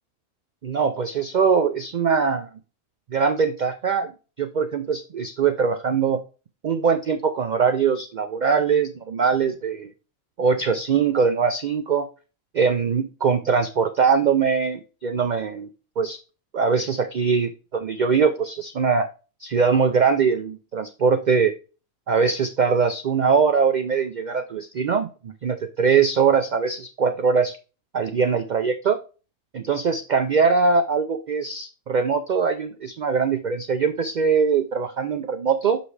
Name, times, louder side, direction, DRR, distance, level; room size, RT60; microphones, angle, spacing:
voice 1, 0.6-2.5 3.1-4.1 4.4-6.2 6.6-9.9 10.4-12.1 12.5-15.7 16.0-16.2 16.5-19.1 19.4-21.5 22.1-27.6 27.9-29.0 29.5-35.8, right 5 dB, 90° right, 8 dB, 0.4 m, -22 dB
6.4 x 5.3 x 3.2 m, 0.34 s
omnidirectional pair, 1.4 m